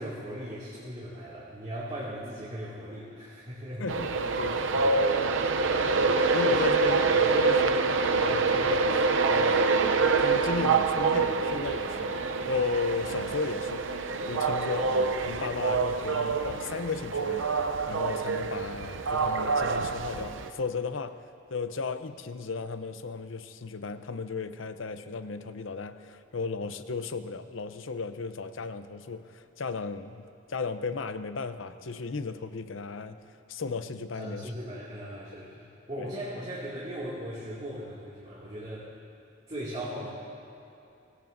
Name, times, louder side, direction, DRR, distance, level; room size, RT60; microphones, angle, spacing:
voice 1, 0.0-3.9 4.4-4.9 5.2-5.9 34.2-38.9 39.5-40.1, equal, 35° right, -8 dB, 2.4 m, -39 dB
voice 2, 3.8-5.1 6.3-12.2 12.5-13.9 14.3-21.2 21.5-33.2 33.5-34.5 36.0-36.1 38.8-38.9, left 4 dB, 85° left, 10 dB, 0.7 m, -35 dB
Train, 3.9-20.5, right 4 dB, 80° right, 0.6 m, -26 dB
24.0 x 18.0 x 2.7 m, 2.8 s
head